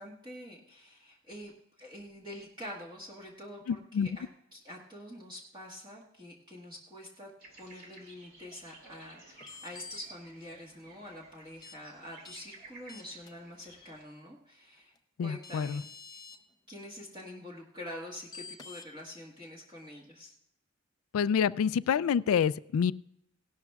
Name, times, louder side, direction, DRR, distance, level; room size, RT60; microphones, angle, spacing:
voice 1, 0.0-7.3 7.6-16.2 16.7-20.3, left 1 dB, 20° right, -4 dB, 1.4 m, -46 dB
voice 2, 3.7-4.1 15.2-15.8 21.1-22.9, left 7 dB, 75° left, 18 dB, 0.3 m, -27 dB
sound 1, 7.4-14.0, right 2 dB, 45° right, 2.5 m, -55 dB
sound 2, 9.4-10.0 11.6-11.8 12.2-12.4 12.9-13.3 15.0-15.1 15.4-16.4 18.3-18.9, left 4 dB, 15° left, 0.5 m, -47 dB
17.5 x 12.0 x 2.3 m, 0.80 s
head